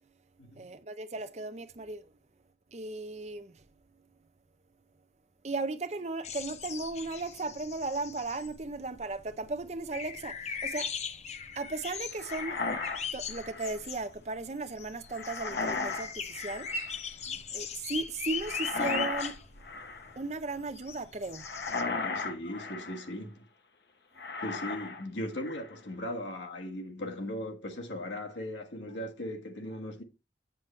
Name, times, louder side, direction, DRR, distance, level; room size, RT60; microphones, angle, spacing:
voice 1, 0.6-2.1 2.7-3.6 5.4-10.9 11.6-12.6 13.1-16.7 17.5-19.3 20.2-21.5, right 3 dB, 35° right, 0.6 m, -36 dB
sound 1, 6.2-21.8, left 6 dB, 35° left, 0.6 m, -40 dB
sound 2, 12.2-13.8 15.1-16.1 16.4-16.9 18.4-19.4 19.6-20.2 21.4-23.1 24.2-25.0 25.3-25.8, left 4 dB, 65° left, 0.9 m, -35 dB
voice 2, 21.7-23.5 24.4-30.0, left 1 dB, 85° left, 1.5 m, -38 dB
7.6 x 7.2 x 3.2 m
head